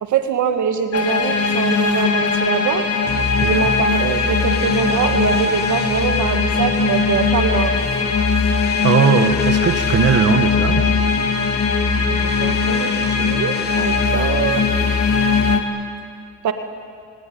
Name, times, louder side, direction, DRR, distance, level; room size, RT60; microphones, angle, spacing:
voice 1, 0.0-2.9 3.4-7.8 12.1-14.6 16.4-16.5, right 7 dB, 70° right, 7 dB, 1.8 m, -23 dB
sound 1, 0.9-15.6, left 4 dB, 55° left, 2.9 m, -20 dB
sound 2, 3.1-15.6, left 5 dB, 35° left, 1.1 m, -26 dB
voice 2, 8.8-10.9, right 6 dB, 50° right, 7 dB, 1.7 m, -18 dB
24.5 x 20.0 x 9.3 m, 2.2 s
cardioid pair, 90°, 30 cm